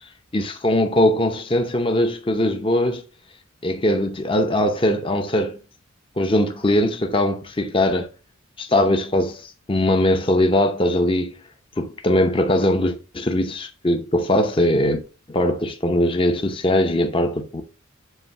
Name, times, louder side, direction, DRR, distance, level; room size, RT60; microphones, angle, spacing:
voice 1, 0.3-3.0 3.6-5.6 6.2-8.1 8.6-11.4 11.8-15.0 15.3-17.6, left 1 dB, 25° left, 0.7 m, -20 dB
8.0 x 2.7 x 5.7 m
head